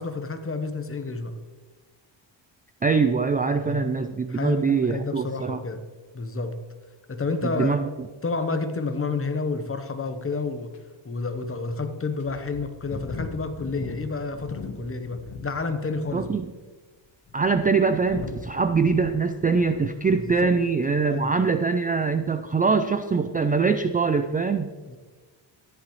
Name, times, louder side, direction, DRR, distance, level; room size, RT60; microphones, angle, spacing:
voice 1, 0.0-1.3 3.6-3.9 4.3-5.8 6.1-6.6 7.1-7.8 8.2-10.7 11.0-16.3 20.1-20.6 21.1-21.3 24.9-25.0, left 4 dB, 30° left, 8 dB, 1.0 m, -30 dB
voice 2, 2.8-5.6 7.4-7.9 16.1-16.5 17.3-24.7, right 4 dB, 20° right, 9 dB, 0.4 m, -23 dB
sound 1, 10.1-10.2 10.7-10.8 11.5-11.6 12.2-15.6 15.8-16.3 17.0-20.5 20.8-21.1, left 4 dB, 70° left, 1.8 m, -39 dB
13.5 x 10.5 x 3.2 m, 1.3 s
cardioid pair, 105°, 47 cm